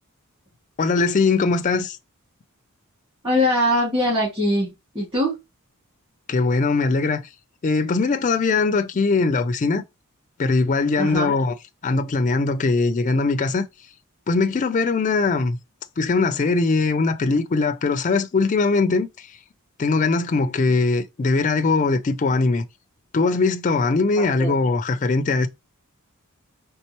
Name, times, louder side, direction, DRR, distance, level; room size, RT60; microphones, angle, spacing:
voice 1, 0.8-2.0 6.3-7.2 7.6-9.8 10.4-11.5 11.8-13.7 14.3-15.6 16.0-19.3 19.8-22.6 23.1-25.5, left 3 dB, 35° left, 0.4 m, -21 dB
voice 2, 3.2-4.7 4.9-5.4 11.0-11.3 24.4-24.5, left 1 dB, 25° right, 2.1 m, -21 dB
4.4 x 3.4 x 2.9 m
head